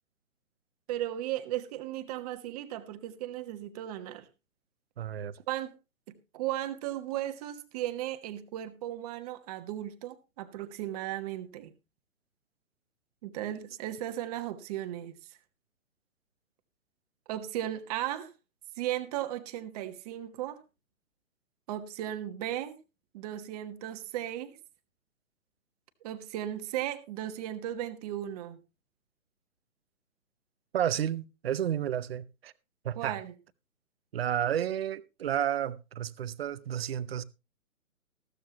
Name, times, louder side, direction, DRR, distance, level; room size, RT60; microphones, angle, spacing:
voice 1, 0.9-4.3 5.5-5.7 6.1-11.7 13.2-15.4 17.3-18.3 18.8-20.6 21.7-22.8 23.1-24.6 26.0-28.6 33.0-33.3, right 13 dB, 25° right, 1.3 m, -36 dB
voice 2, 5.0-5.4 30.7-32.5 32.8-33.2 34.1-37.2, right 10 dB, 45° right, 0.8 m, -31 dB
15.0 x 13.0 x 2.9 m
figure-of-eight pair, 140°, 43 cm